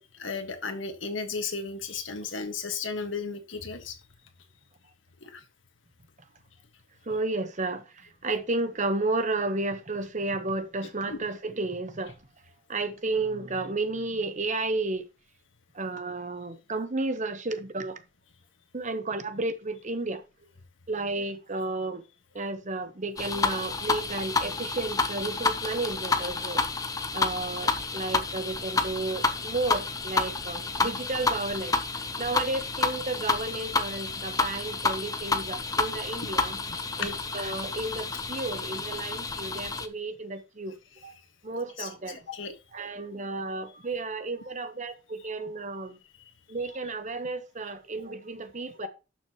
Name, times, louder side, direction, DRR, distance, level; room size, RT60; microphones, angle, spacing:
voice 1, 0.1-4.0 5.2-5.4 11.1-11.2 36.2-36.3 36.7-37.1 41.8-42.5 46.2-46.3, left 4 dB, 80° left, 1.7 m, -35 dB
voice 2, 7.1-12.2 12.7-15.1 15.7-18.0 18.7-20.2 20.9-22.0 22.3-26.6 27.1-41.1 41.4-42.2 42.7-46.0 46.5-48.9, right 2 dB, 40° right, 1.0 m, -32 dB
sound 1, 23.2-39.9, left 3 dB, 20° left, 0.7 m, -30 dB
11.5 x 6.2 x 3.0 m
head